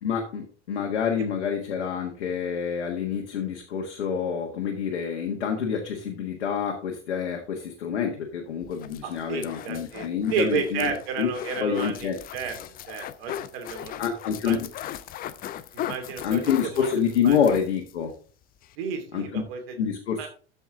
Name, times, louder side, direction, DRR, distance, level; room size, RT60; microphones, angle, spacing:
voice 1, 0.0-10.9 11.2-11.3 11.6-12.2 14.0-14.7 16.2-18.1 19.1-19.4 19.8-20.3, left 7 dB, 65° left, 2 dB, 1.7 m, -27 dB
sound 1, 8.6-18.0 18.3-18.4 18.6-18.8, left 12 dB, 25° left, 0.6 m, -38 dB
voice 2, 9.0-12.6 12.9-13.9 14.4-14.6 15.7-16.9 17.2-17.4 18.8-19.8 20.2-20.3, right 6 dB, 55° right, 5 dB, 2.6 m, -32 dB
13.0 x 5.5 x 3.7 m, 0.39 s
figure-of-eight pair, 80°, 35 cm